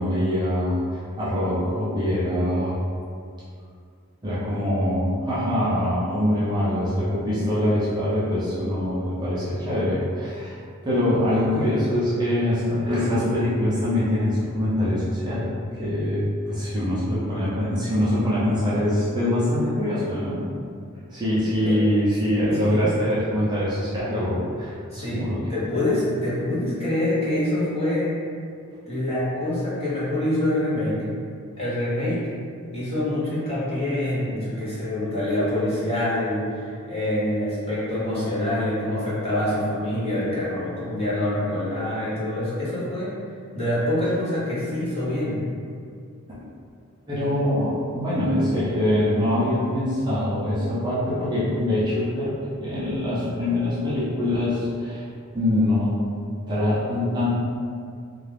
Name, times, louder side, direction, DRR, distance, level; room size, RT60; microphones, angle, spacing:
voice 1, 0.0-2.8 4.2-15.5 15.8-20.5 21.1-25.4 46.3-46.4 47.1-55.0 55.3-56.0 56.5-57.3, left 1 dB, 20° right, -10 dB, 0.4 m, -24 dB
voice 2, 24.9-28.2 28.9-31.1 31.5-32.3 32.7-43.2 43.5-45.4, left 1 dB, 25° left, -10 dB, 0.8 m, -25 dB
2.4 x 2.3 x 3.2 m, 2.3 s
head